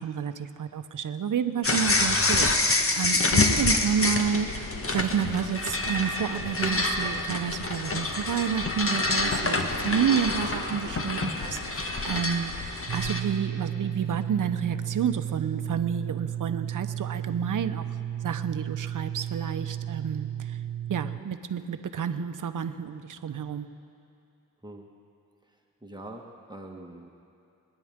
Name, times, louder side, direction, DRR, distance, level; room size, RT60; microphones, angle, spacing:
voice 1, 0.0-4.5 4.9-17.9 18.2-20.6 20.9-23.7, right 7 dB, 60° right, 9 dB, 1.0 m, -30 dB
sound 1, 1.6-13.2, left 2 dB, 40° left, 1.6 m, -27 dB
sound 2, 12.9-21.2, right 10 dB, 35° right, 0.4 m, -33 dB
voice 2, 25.8-27.1, right 1 dB, 10° right, 0 dB, 1.6 m, -43 dB
29.0 x 10.0 x 3.7 m, 2.7 s
supercardioid pair, 50°, 36 cm